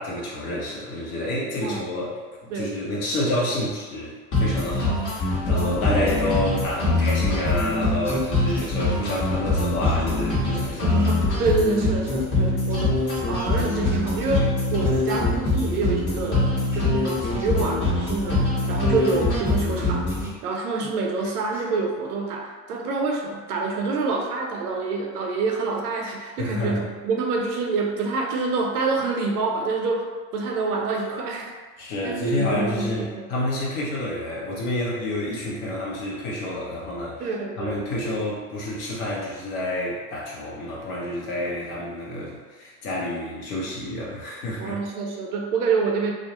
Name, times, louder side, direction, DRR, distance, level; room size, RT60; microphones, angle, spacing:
voice 1, 0.0-2.1 2.4-11.0 26.4-26.8 31.8-37.3 37.6-44.8, left 1 dB, 65° left, -5 dB, 0.9 m, -29 dB
sound 1, 4.3-20.3, left 2 dB, 40° left, 1.1 m, -23 dB
voice 2, 5.5-6.4 6.8-7.1 10.8-13.0 13.3-20.1 20.4-31.5 32.0-33.3 37.2-37.8 44.6-46.1, right 4 dB, 80° right, 1 dB, 0.6 m, -27 dB
sound 2, 8.0-8.1 8.5-9.5 9.8-10.0 10.3-11.1 11.4-11.5 11.9-12.0 12.7-12.8 13.1-15.0 16.0-16.1 16.3-16.4 16.7-16.8 17.0-17.1 17.3-17.4 17.9-18.0 18.6-18.7 19.0-19.8 20.1-20.5 20.8-21.0 21.2-21.6, equal, 5° right, 0.7 m, -44 dB
2.4 x 2.1 x 2.9 m, 1.4 s
hypercardioid pair, 75°, 45 cm